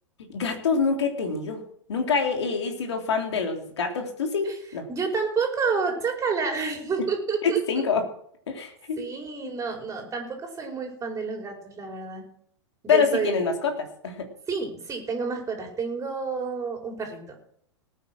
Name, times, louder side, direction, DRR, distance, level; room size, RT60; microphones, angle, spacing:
voice 1, 0.3-1.6 1.9-4.9 7.4-8.0 8.5-9.0 12.9-14.3, left 5 dB, 65° left, 4 dB, 3.5 m, -26 dB
voice 2, 4.9-7.6 9.0-12.2 12.8-13.4 14.5-17.3, right 5 dB, 20° right, 2 dB, 5.1 m, -29 dB
18.5 x 9.4 x 6.2 m, 0.66 s
figure-of-eight pair, 100°, 15 cm